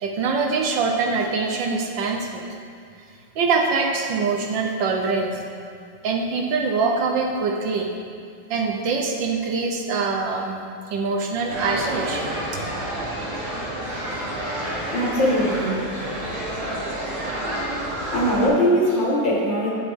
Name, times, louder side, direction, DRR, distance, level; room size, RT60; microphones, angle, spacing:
voice 1, 0.0-2.4 3.3-5.4 6.0-7.9 8.5-12.3, right 4 dB, 80° right, 1 dB, 1.7 m, -24 dB
sound 1, 11.5-18.5, right 1 dB, 60° right, 2.3 m, -29 dB
voice 2, 14.9-16.0 17.6-17.7 18.1-19.7, equal, 90° left, -5 dB, 2.7 m, -21 dB
10.5 x 7.4 x 3.7 m, 2.3 s
omnidirectional pair, 2.0 m